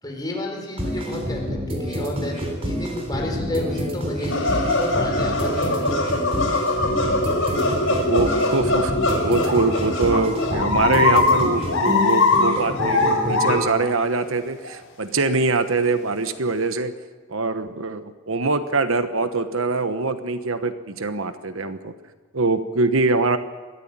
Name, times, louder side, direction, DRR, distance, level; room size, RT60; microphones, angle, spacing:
voice 1, 0.0-5.9, left 1 dB, 20° left, 0 dB, 4.5 m, -31 dB
sound 1, 0.8-13.7, equal, 25° right, 3.6 m, -28 dB
sound 2, 4.3-13.9 14.1-14.2 14.6-14.7 15.2-15.3 15.6-15.7 16.2-16.3, left 3 dB, 65° left, 4.7 m, -22 dB
voice 2, 7.9-16.9 17.3-21.9 22.3-23.4, right 3 dB, 65° right, 10 dB, 1.1 m, -23 dB
22.5 x 15.0 x 9.0 m, 1.5 s
head